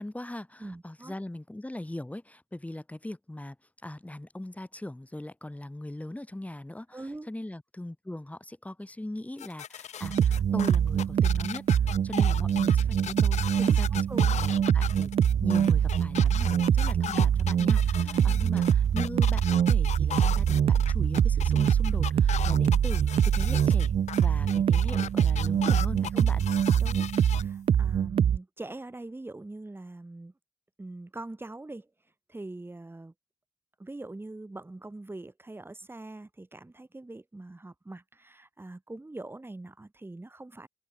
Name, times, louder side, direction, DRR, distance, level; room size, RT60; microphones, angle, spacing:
voice 1, 0.0-3.6 3.8-11.7 12.0-15.1 15.4-23.9 24.2-26.5, left 1 dB, 10° left, 1.9 m, -40 dB
voice 2, 0.6-1.1 6.9-7.3 13.6-14.4 18.0-18.4 26.1-26.3 26.8-30.3 30.8-31.9 32.3-33.1 33.8-40.7, right 2 dB, 20° right, 1.9 m, -43 dB
sound 1, 9.4-27.4, left 9 dB, 75° left, 0.6 m, -38 dB
sound 2, 10.0-28.4, right 8 dB, 50° right, 0.3 m, -24 dB
cardioid pair, 70°, 12 cm